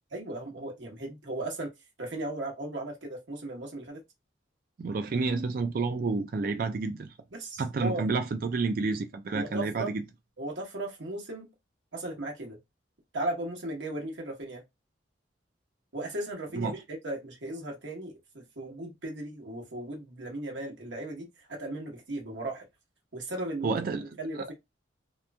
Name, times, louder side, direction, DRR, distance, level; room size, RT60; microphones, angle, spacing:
voice 1, 0.1-1.7 2.0-4.0 7.3-8.0 9.3-9.9 10.4-11.5 11.9-12.6 13.1-14.6 15.9-22.6 23.1-23.7 24.2-24.5, right 1 dB, 75° right, 1.1 m, -36 dB
voice 2, 4.8-7.1 7.6-10.0 16.5-16.7 23.6-24.0, right 4 dB, 50° right, 0.3 m, -29 dB
2.9 x 2.5 x 2.2 m
head